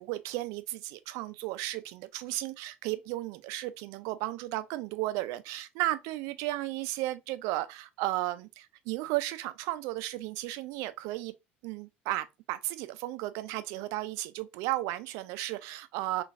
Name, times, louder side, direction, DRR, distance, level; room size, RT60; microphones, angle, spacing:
voice 1, 0.0-11.3 11.6-16.2, right 16 dB, 60° right, 0.4 m, -34 dB
3.8 x 2.4 x 2.5 m
hypercardioid pair, 70°, 6 cm